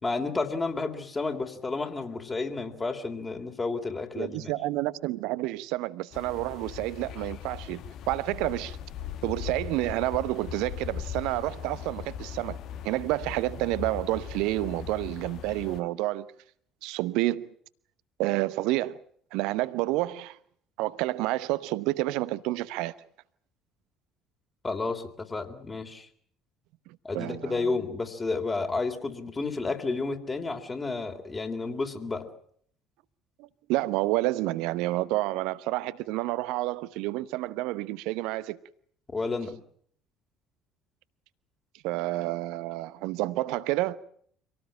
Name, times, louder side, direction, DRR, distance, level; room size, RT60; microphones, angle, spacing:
voice 1, 0.0-4.5 24.6-26.1 27.0-32.3 39.1-39.6, left 3 dB, 25° left, 3.3 m, -31 dB
voice 2, 4.1-8.8 9.2-12.6 12.8-16.3 16.8-17.5 18.2-19.0 19.3-20.4 20.8-22.9 26.9-27.7 33.4-38.6 41.8-44.0, right 18 dB, 60° right, 1.0 m, -29 dB
sound 1, 6.1-15.8, left 9 dB, 55° left, 1.2 m, -39 dB
26.0 x 18.0 x 8.9 m
figure-of-eight pair, 55°, 0 cm